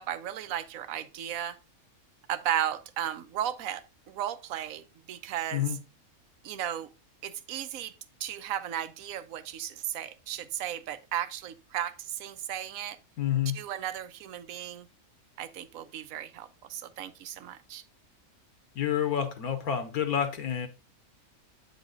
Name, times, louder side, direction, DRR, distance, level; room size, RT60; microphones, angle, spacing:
voice 1, 0.0-1.6 2.3-5.7 6.4-6.9 7.2-7.9 8.2-13.0 13.5-14.9 15.4-17.8, right 11 dB, 70° right, 1.0 m, -35 dB
voice 2, 13.2-13.6 18.7-20.7, left 9 dB, 75° left, 1.3 m, -28 dB
8.5 x 4.0 x 3.7 m
omnidirectional pair, 1.6 m